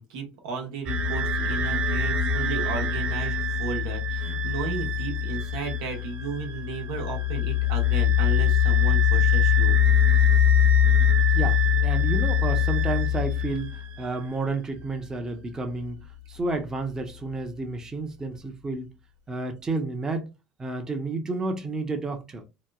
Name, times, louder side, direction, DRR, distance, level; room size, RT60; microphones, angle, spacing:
voice 1, 0.0-9.8, right 5 dB, 90° right, 0.9 m, -34 dB
sound 1, 0.9-14.0, left 7 dB, 60° right, 0.5 m, -23 dB
voice 2, 11.3-13.7 14.0-18.9 19.3-20.3 20.6-22.5, right 3 dB, 20° right, 0.7 m, -31 dB
2.9 x 2.0 x 2.3 m
supercardioid pair, 95°, 3 cm